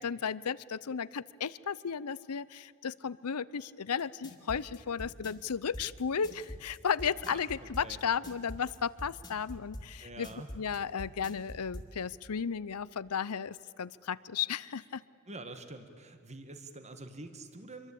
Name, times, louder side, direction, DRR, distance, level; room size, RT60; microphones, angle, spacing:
voice 1, 0.0-10.3 10.5-15.0, left 6 dB, 90° left, 19 dB, 0.7 m, -34 dB
sound 1, 4.0-11.9, equal, 20° left, 2.7 m, -44 dB
voice 2, 7.2-8.0 10.0-10.5 15.3-17.9, right 2 dB, 30° right, 8 dB, 1.8 m, -46 dB
26.5 x 23.0 x 8.6 m, 2.2 s
head